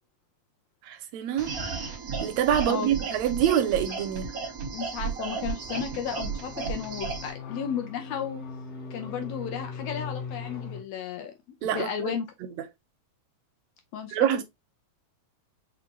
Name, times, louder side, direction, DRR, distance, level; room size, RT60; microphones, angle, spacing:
voice 1, 0.8-1.5 2.2-4.3 11.6-12.1 14.1-14.4, right 10 dB, 80° right, 1.6 m, -25 dB
sound 1, 1.4-7.3, right 5 dB, 60° right, 0.9 m, -34 dB
sound 2, 3.8-10.8, left 5 dB, 60° left, 2.2 m, -41 dB
voice 2, 4.7-8.4 8.9-11.3 11.7-12.3 13.9-14.2, left 8 dB, 75° left, 1.7 m, -33 dB
5.9 x 2.4 x 3.0 m
omnidirectional pair, 3.3 m